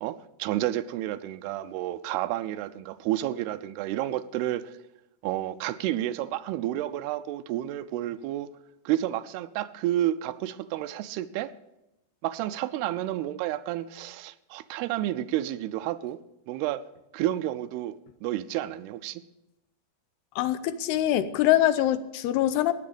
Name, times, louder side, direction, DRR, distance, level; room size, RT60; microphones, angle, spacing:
voice 1, 0.0-4.7 5.2-8.5 8.9-11.5 12.2-16.2 16.5-16.8 17.1-18.0 18.2-19.2, right 13 dB, 85° right, 13 dB, 2.6 m, -30 dB
voice 2, 20.4-22.7, left 13 dB, 85° left, 13 dB, 2.7 m, -24 dB
15.5 x 10.5 x 5.0 m, 0.93 s
omnidirectional pair, 4.7 m